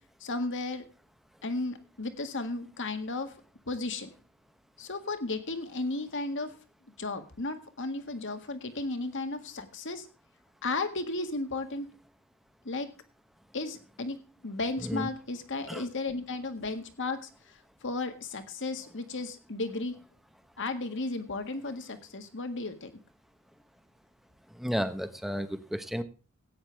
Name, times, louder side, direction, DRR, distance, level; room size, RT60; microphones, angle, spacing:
voice 1, 0.2-0.9 1.4-3.3 3.7-4.1 4.8-6.5 7.0-10.1 10.6-11.9 12.6-12.9 13.5-14.2 14.4-19.9 20.6-22.9, left 2 dB, 55° left, 8 dB, 1.8 m, -34 dB
voice 2, 24.5-26.0, equal, ahead, 10 dB, 1.0 m, -32 dB
16.5 x 9.6 x 3.4 m, 0.34 s
head